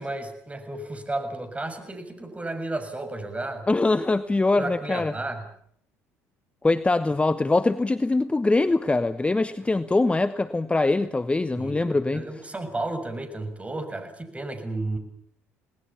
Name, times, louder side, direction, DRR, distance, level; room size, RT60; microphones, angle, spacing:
voice 1, 0.0-3.7 4.6-5.4 11.6-15.0, right 2 dB, 20° right, 6.7 m, -33 dB
voice 2, 3.7-5.1 6.6-12.2, left 2 dB, 15° left, 1.1 m, -23 dB
28.5 x 19.5 x 7.1 m
hypercardioid pair, 60°, 7 cm